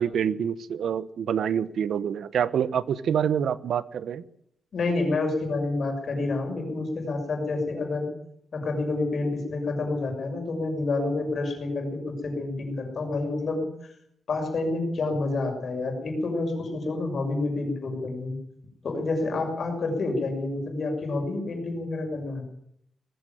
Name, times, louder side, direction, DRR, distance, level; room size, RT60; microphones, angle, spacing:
voice 1, 0.0-4.2, right 8 dB, 70° right, 16 dB, 1.0 m, -26 dB
voice 2, 4.7-8.1 8.5-13.7 14.3-18.4 18.8-22.4, left 2 dB, 45° left, 3 dB, 6.4 m, -28 dB
19.5 x 15.5 x 9.3 m, 0.72 s
wide cardioid pair, 180°, 0 cm